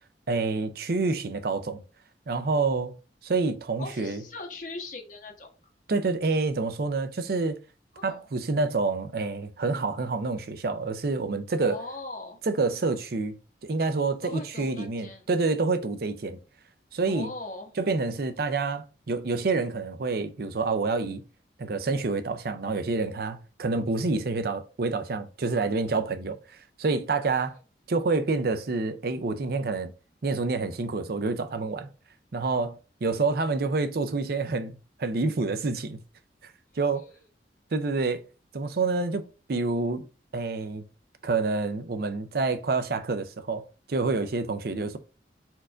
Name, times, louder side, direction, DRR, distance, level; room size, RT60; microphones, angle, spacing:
voice 1, 0.3-1.8 2.3-2.9 3.2-4.2 5.9-7.6 8.0-11.8 12.5-13.3 13.6-16.4 16.9-17.3 17.8-21.2 21.6-26.4 26.8-27.6 27.9-29.9 30.2-31.9 32.3-32.8 33.0-36.0 36.8-37.0 37.7-38.2 38.5-40.1 40.3-40.8 41.2-43.6 43.9-45.0, right 3 dB, 55° right, 0.5 m, -27 dB
voice 2, 3.8-5.5 7.9-8.3 11.6-12.4 14.2-15.2 17.1-17.7 27.3-27.4 36.9-37.2, left 2 dB, 45° left, 1.0 m, -40 dB
4.4 x 2.5 x 4.4 m
head